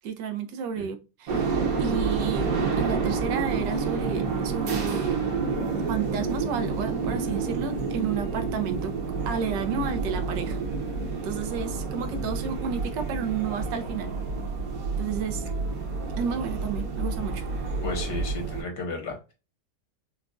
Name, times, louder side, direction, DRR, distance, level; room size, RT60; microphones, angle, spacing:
voice 1, 0.0-5.2 5.9-8.9 9.3-10.6 11.2-14.1 15.0-15.4 16.2-17.4, right 7 dB, 85° right, 1.3 m, -32 dB
sound 1, 1.3-18.6, right 4 dB, 60° right, 1.3 m, -29 dB
voice 2, 17.8-19.3, left 3 dB, 65° left, 1.7 m, -34 dB
5.0 x 2.2 x 2.3 m
omnidirectional pair, 1.9 m